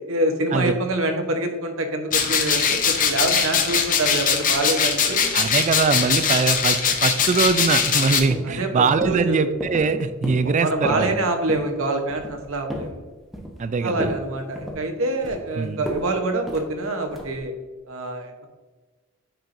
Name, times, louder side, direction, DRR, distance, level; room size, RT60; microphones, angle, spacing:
voice 1, 0.1-5.2 8.4-9.4 10.6-12.9 13.8-17.5 17.9-18.5, right 2 dB, 75° right, 5 dB, 0.9 m, -26 dB
sound 1, 2.1-8.2, left 6 dB, 40° left, 0.7 m, -21 dB
voice 2, 5.3-11.1 13.6-14.1 15.6-15.8, right 5 dB, 35° right, 12 dB, 0.4 m, -22 dB
sound 2, 8.3-8.7 9.0-9.2 9.6-9.9 10.2-10.5 10.8-11.1 11.5-11.7 12.1-12.9 13.3-13.7 14.0-14.2 14.5-15.5 15.9-16.1 16.5-16.7 17.1-17.4, equal, ahead, 0.9 m, -32 dB
9.0 x 4.5 x 2.6 m, 1.3 s
head